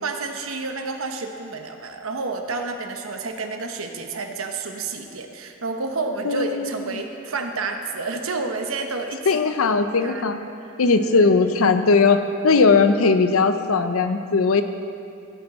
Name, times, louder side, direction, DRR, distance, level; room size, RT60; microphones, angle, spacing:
voice 1, 0.0-9.3 10.0-10.3 11.1-11.3, right 3 dB, 80° right, 4 dB, 1.0 m, -30 dB
voice 2, 6.2-7.0 9.3-10.4 10.8-14.6, left 4 dB, 90° left, 9 dB, 0.6 m, -19 dB
15.0 x 8.8 x 4.3 m, 2.7 s
head